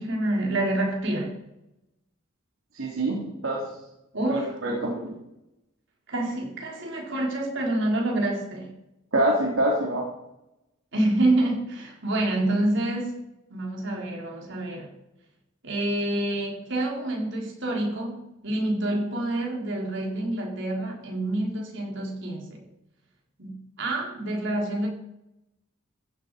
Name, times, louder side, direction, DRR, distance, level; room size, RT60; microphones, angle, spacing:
voice 1, 0.0-1.4 4.1-4.6 6.1-8.7 10.9-13.2 13.5-14.9 15.6-22.6 23.4-24.9, right 1 dB, 60° right, 0 dB, 4.4 m, -27 dB
voice 2, 2.7-3.6 4.3-5.2 9.1-10.0, right 1 dB, 80° right, -2 dB, 3.2 m, -25 dB
15.5 x 12.0 x 5.1 m, 0.88 s
head